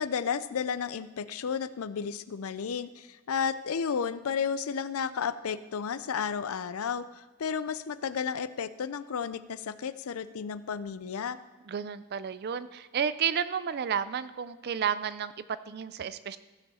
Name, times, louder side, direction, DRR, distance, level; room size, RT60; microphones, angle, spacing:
voice 1, 0.0-11.4, left 6 dB, 75° left, 15 dB, 0.5 m, -32 dB
voice 2, 11.7-16.4, right 7 dB, 45° right, 15 dB, 0.4 m, -32 dB
15.0 x 6.9 x 4.2 m, 1.1 s
head